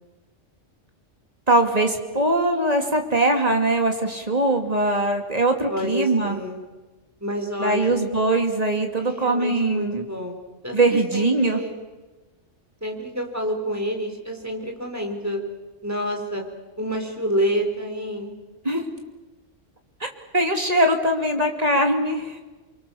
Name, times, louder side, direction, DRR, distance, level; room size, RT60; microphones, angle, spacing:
voice 1, 1.5-6.4 7.6-10.1 10.7-11.6 18.6-18.8 20.3-22.4, right 2 dB, 30° right, 4 dB, 2.7 m, -21 dB
voice 2, 5.7-6.6 7.2-8.0 9.0-10.4 10.6-11.8 12.8-15.4 15.8-16.4 16.8-18.4 18.7-18.8, equal, 15° right, 2 dB, 4.1 m, -28 dB
29.0 x 23.5 x 7.1 m, 1.2 s
omnidirectional pair, 1.2 m